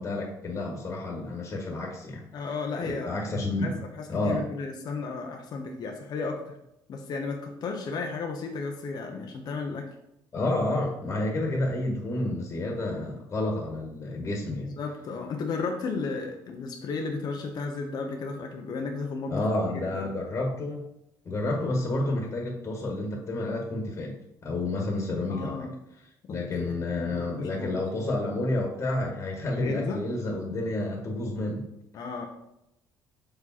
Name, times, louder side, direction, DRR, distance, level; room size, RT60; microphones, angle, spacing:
voice 1, 0.0-2.3 2.8-3.8 4.1-4.5 10.3-14.7 19.3-20.8 21.2-24.1 24.4-25.7 26.3-31.6, left 2 dB, 35° left, 0 dB, 1.6 m, -30 dB
voice 2, 2.3-6.6 6.9-9.9 14.6-20.0 25.3-25.7 26.3-27.9 29.6-30.0 31.9-32.3, left 4 dB, 55° left, 2 dB, 1.0 m, -34 dB
6.4 x 4.9 x 4.3 m, 0.83 s
cardioid pair, 105°, 8 cm